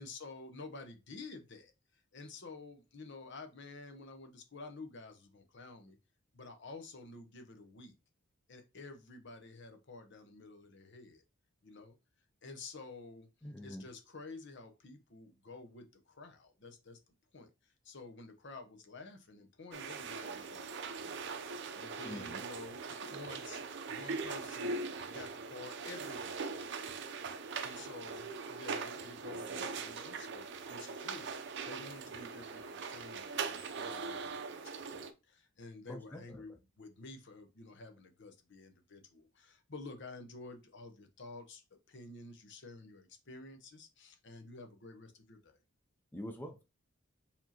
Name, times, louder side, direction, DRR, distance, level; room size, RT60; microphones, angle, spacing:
voice 1, 0.0-6.0 6.3-7.9 8.5-11.2 11.6-12.0 12.4-13.3 13.6-17.0 17.3-21.3 21.7-23.6 23.9-26.8 27.6-41.6 41.9-45.6, left 3 dB, 60° left, 6 dB, 0.9 m, -51 dB
voice 2, 13.4-13.8 22.0-22.4 35.9-36.4 46.1-46.6, left 1 dB, 10° left, 4 dB, 0.5 m, -45 dB
sound 1, 19.7-35.1, right 4 dB, 60° right, 0.6 m, -41 dB
4.7 x 3.6 x 2.9 m, 0.27 s
head